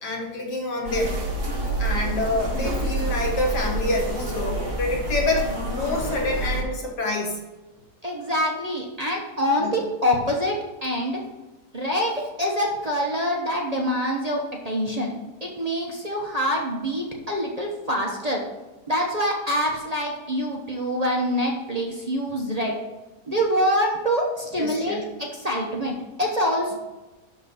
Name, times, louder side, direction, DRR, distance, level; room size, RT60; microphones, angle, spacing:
voice 1, 0.0-1.2 1.8-7.4 9.6-9.7 24.6-25.0, left 2 dB, 75° left, 0 dB, 2.3 m, -27 dB
sound 1, 0.8-6.6, right 2 dB, 55° right, 2.2 m, -28 dB
voice 2, 8.0-10.6 10.8-11.2 11.7-15.1 15.4-18.4 18.9-22.7 23.3-26.7, equal, 25° right, -2 dB, 1.0 m, -25 dB
11.5 x 3.9 x 5.7 m, 1.1 s
omnidirectional pair, 1.8 m